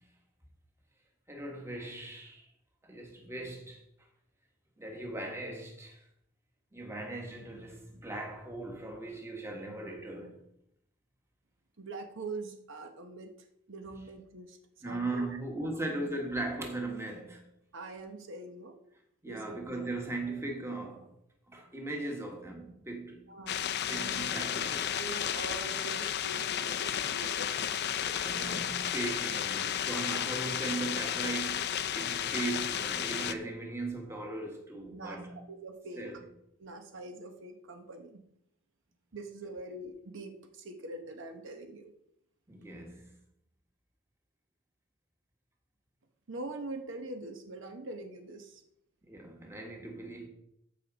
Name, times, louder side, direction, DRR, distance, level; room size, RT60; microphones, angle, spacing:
voice 1, 1.3-2.5 2.8-3.8 4.8-6.0 6.7-10.4 14.8-17.5 19.2-21.1 21.5-23.3 23.9-25.0 28.2-35.3 36.0-36.2 42.5-43.1 49.1-50.3, right 2 dB, 15° right, 1.5 m, -38 dB
voice 2, 11.8-13.3 13.7-14.6 14.9-15.4 15.6-15.7 17.7-18.8 19.3-19.6 23.3-24.4 25.0-28.5 34.9-36.1 36.6-38.2 39.1-41.9 46.3-48.6, right 2 dB, 60° right, 1.0 m, -44 dB
sound 1, 23.5-33.3, left 9 dB, 50° left, 0.5 m, -33 dB
14.0 x 5.1 x 4.0 m
head